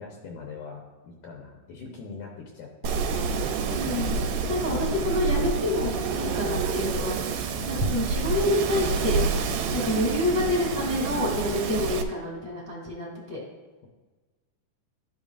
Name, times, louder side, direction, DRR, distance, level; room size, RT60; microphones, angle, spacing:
voice 1, 0.0-3.2 4.4-4.9 6.1-6.6 7.5-8.0, left 4 dB, 70° left, -1 dB, 2.2 m, -42 dB
Wind, 2.8-12.0, right 5 dB, 80° right, 2.1 m, -28 dB
voice 2, 3.7-4.2 4.5-7.2 7.7-9.2 9.7-13.4, left 2 dB, 5° left, -5 dB, 1.6 m, -27 dB
13.0 x 5.4 x 2.5 m, 1.3 s
omnidirectional pair, 3.9 m